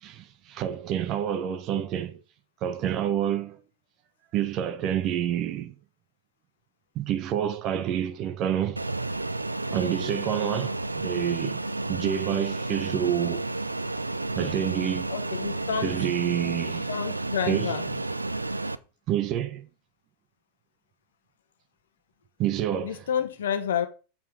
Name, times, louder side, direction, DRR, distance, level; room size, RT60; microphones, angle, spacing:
voice 1, 0.0-2.2 2.6-3.6 4.3-5.8 6.9-8.8 9.7-11.6 11.9-13.5 14.3-15.1 15.8-16.9 17.5-18.0 19.1-19.6 22.4-23.0, right 10 dB, 35° right, 0.9 m, -28 dB
Fixed-wing aircraft airplane, 8.8-18.8, right 2 dB, 80° right, 0.4 m, -31 dB
voice 2, 15.1-15.9 16.9-17.8 22.8-23.9, left 8 dB, 60° left, 1.1 m, -29 dB
7.2 x 4.3 x 6.1 m
figure-of-eight pair, 90°, 0 cm